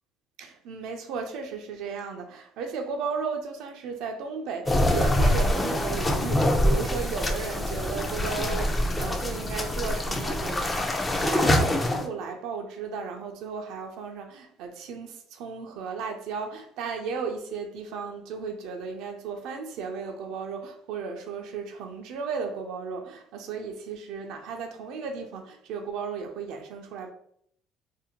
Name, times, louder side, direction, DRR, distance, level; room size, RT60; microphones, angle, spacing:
voice 1, 0.4-27.1, right 5 dB, 75° right, 0.4 m, -35 dB
sound 1, 4.7-12.1, left 1 dB, 20° left, 0.4 m, -25 dB
2.5 x 2.1 x 2.8 m
supercardioid pair, 95°, 0 cm